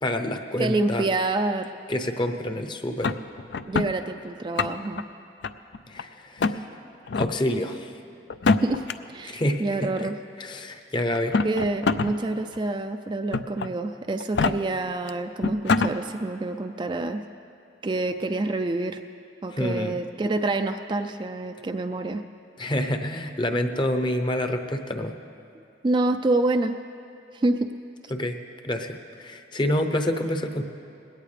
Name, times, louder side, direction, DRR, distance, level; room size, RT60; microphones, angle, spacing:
voice 1, 0.0-1.0 1.9-3.2 5.9-6.6 7.2-7.9 9.2-10.1 10.4-11.4 19.5-20.0 22.6-25.1 28.1-28.4 28.6-30.6, left 1 dB, 25° left, 6 dB, 0.7 m, -27 dB
voice 2, 0.6-1.7 3.7-5.0 8.5-8.8 9.1-10.2 11.4-17.2 17.8-19.0 19.4-22.2 25.8-26.8 27.3-27.7, right 2 dB, 25° right, 6 dB, 0.3 m, -27 dB
sound 1, 3.0-3.9 4.4-5.0 5.4-6.0 6.4-6.6 7.1-7.3 8.3-8.9 10.0-10.1 11.1-12.1 12.5-12.6 13.3-13.7 14.2-14.5 15.1-15.2 15.4-15.9, left 4 dB, 70° left, 0.4 m, -24 dB
20.0 x 17.0 x 3.3 m, 2.5 s
head